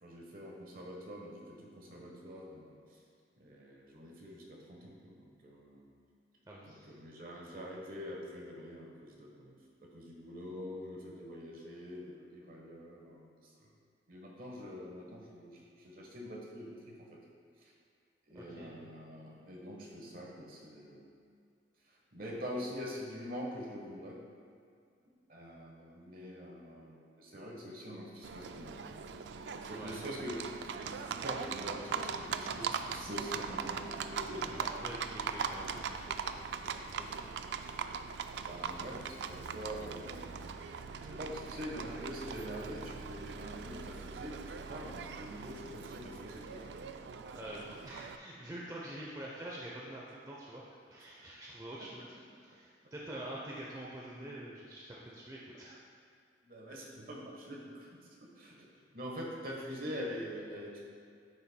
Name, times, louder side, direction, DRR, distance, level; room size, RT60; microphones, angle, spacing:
voice 1, 0.0-3.0 3.4-5.9 6.6-9.6 9.8-13.7 14.1-17.2 17.6-17.7 18.3-21.1 21.9-24.2 25.3-28.9 29.5-30.6 30.8-34.7 38.4-40.6 41.0-46.7 47.1-47.3 56.4-58.6 58.9-60.8, equal, 50° right, -2 dB, 1.2 m, -45 dB
voice 2, 6.5-6.9 18.3-18.7 29.7-30.0 34.2-37.3 47.3-50.6 50.9-55.7, right 1 dB, 20° right, -5 dB, 0.6 m, -46 dB
Livestock farm animals working animals, 28.2-48.2, right 6 dB, 70° right, 0.3 m, -40 dB
9.8 x 7.1 x 2.2 m, 2.3 s
head